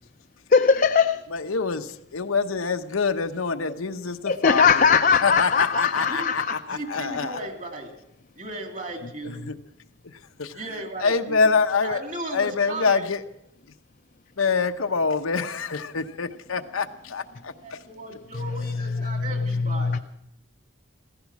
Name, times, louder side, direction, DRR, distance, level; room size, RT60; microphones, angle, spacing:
voice 1, 0.5-1.2 4.3-6.6 19.0-20.0, left 5 dB, 40° left, 0.5 m, -20 dB
voice 2, 1.3-7.4 9.5-9.6 10.4-10.6 11.0-12.0 12.3-13.2 14.4-17.5, left 4 dB, 90° left, 0.9 m, -25 dB
voice 3, 6.7-7.9 8.4-9.5 10.5-11.5 11.8-13.1 17.6-20.0, right 2 dB, 40° right, 2.5 m, -36 dB
16.0 x 15.0 x 6.0 m
head